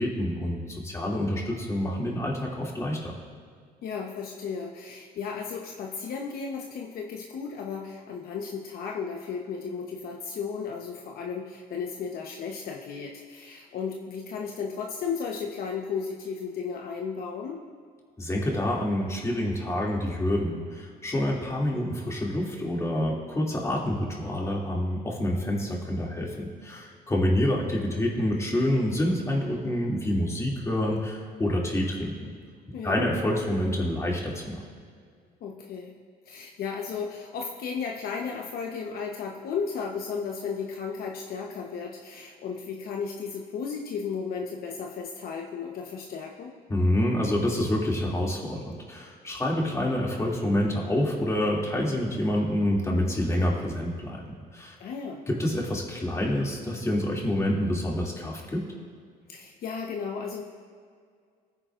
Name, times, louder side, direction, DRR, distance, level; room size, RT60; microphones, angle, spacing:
voice 1, 0.0-3.1 18.2-32.3 32.8-34.6 46.7-54.2 54.5-54.8 55.3-58.6, left 1 dB, 15° left, -3 dB, 2.5 m, -27 dB
voice 2, 3.8-17.6 32.7-33.1 35.4-35.9 36.3-46.5 54.8-55.2 59.3-60.4, left 6 dB, 65° left, 1 dB, 1.0 m, -34 dB
19.5 x 9.8 x 2.5 m, 2.1 s
cardioid pair, 110°, 17 cm